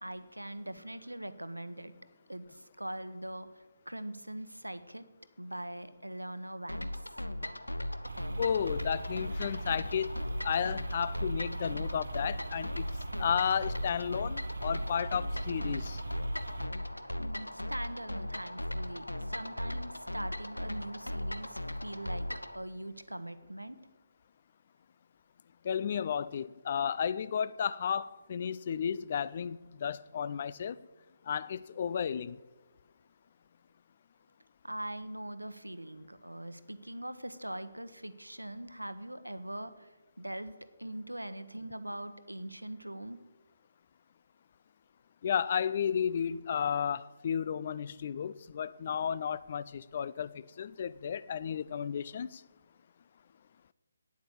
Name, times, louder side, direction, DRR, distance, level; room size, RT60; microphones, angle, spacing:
voice 1, 0.0-1.9 2.3-5.1 5.4-6.9 17.1-23.8 34.6-39.9 40.2-43.2, right 1 dB, 85° right, 0.9 m, -42 dB
sound 1, 6.7-22.6, left 1 dB, 85° left, 0.8 m, -38 dB
sound 2, 8.0-16.7, right 2 dB, 60° right, 0.7 m, -41 dB
voice 2, 8.4-10.2 10.4-12.8 13.2-16.0 25.6-30.8 31.3-32.4 45.2-52.4, left 7 dB, 40° left, 0.4 m, -33 dB
9.4 x 8.3 x 8.3 m
figure-of-eight pair, 145°, 0 cm